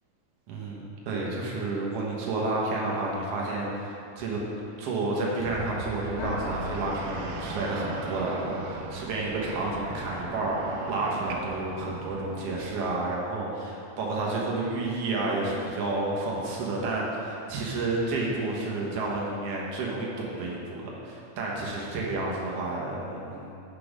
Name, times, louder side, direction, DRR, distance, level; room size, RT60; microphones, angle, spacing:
voice 1, 0.5-4.4 4.8-23.6, right 2 dB, 65° right, -4 dB, 1.6 m, -30 dB
sound 1, 5.4-12.6, right 4 dB, 80° right, 2.0 m, -39 dB
sound 2, 6.2-10.9, left 3 dB, 75° left, 1.9 m, -41 dB
6.9 x 4.8 x 5.2 m, 2.6 s
omnidirectional pair, 3.9 m